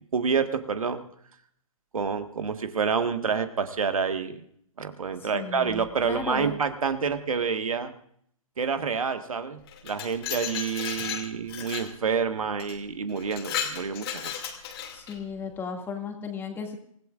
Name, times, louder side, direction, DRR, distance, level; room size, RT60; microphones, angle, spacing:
voice 1, 0.1-1.0 1.9-4.4 4.8-7.9 8.6-14.3, right 5 dB, 70° right, 8 dB, 1.6 m, -28 dB
voice 2, 5.3-6.5 14.9-16.8, left 5 dB, 10° left, 3 dB, 2.3 m, -35 dB
Glass, 9.7-11.9 12.6-12.8 13.2-15.2, left 8 dB, 45° left, 2.5 m, -34 dB
28.0 x 16.5 x 2.5 m, 0.65 s
figure-of-eight pair, 135°, 18 cm